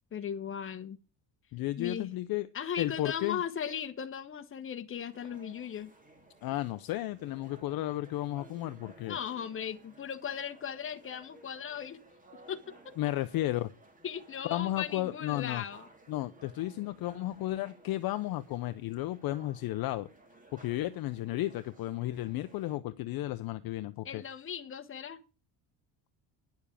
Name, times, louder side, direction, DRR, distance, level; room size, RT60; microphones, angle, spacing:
voice 1, 0.1-1.0 1.8-2.1 2.5-5.9 9.1-12.0 12.5-12.9 14.0-15.8 24.0-25.2, left 8 dB, 25° left, 1.2 m, -37 dB
voice 2, 1.5-2.5 2.8-3.4 6.4-9.2 13.0-13.7 14.4-15.6 16.1-20.1 20.5-24.2, left 15 dB, 50° left, 0.6 m, -33 dB
sound 1, 5.1-22.8, right 2 dB, 15° right, 2.2 m, -57 dB
10.5 x 7.2 x 8.4 m
cardioid pair, 150°, 46 cm